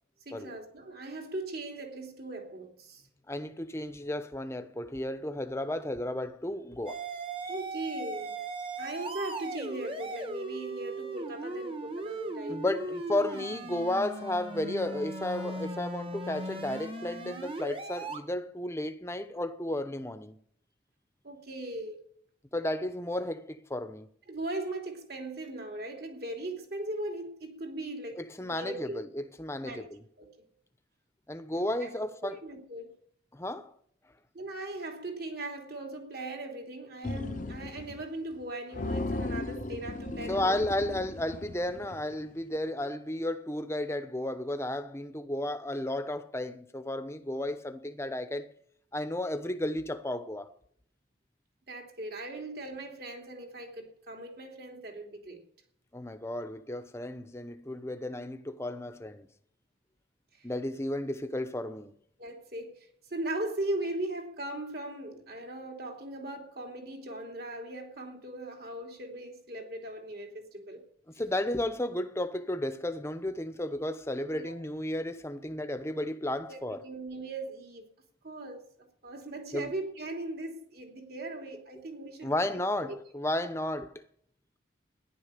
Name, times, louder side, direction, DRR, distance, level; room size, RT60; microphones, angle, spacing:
voice 1, 0.2-3.0 7.5-8.3 8.8-12.7 15.3-15.5 21.2-22.0 24.3-29.0 29.6-29.8 30.2-30.3 31.5-31.9 32.2-32.9 34.3-40.6 51.7-55.4 60.4-60.5 62.2-70.8 74.3-74.6 76.5-77.8 78.2-82.3 82.8-83.0, right 2 dB, 55° right, 3.0 m, -39 dB
voice 2, 3.3-7.1 7.4-7.5 12.5-20.4 22.5-24.1 28.2-30.0 31.3-32.4 33.3-33.7 40.3-48.5 48.9-50.5 55.9-59.3 60.4-61.9 71.2-76.8 79.5-79.7 82.2-84.0, left 1 dB, 15° left, 0.9 m, -33 dB
sound 1, 6.9-18.2, right 2 dB, 30° right, 1.5 m, -38 dB
sound 2, 37.0-38.0 38.3-38.4 38.7-42.1, left 2 dB, 45° left, 0.8 m, -36 dB
14.5 x 11.0 x 6.8 m
head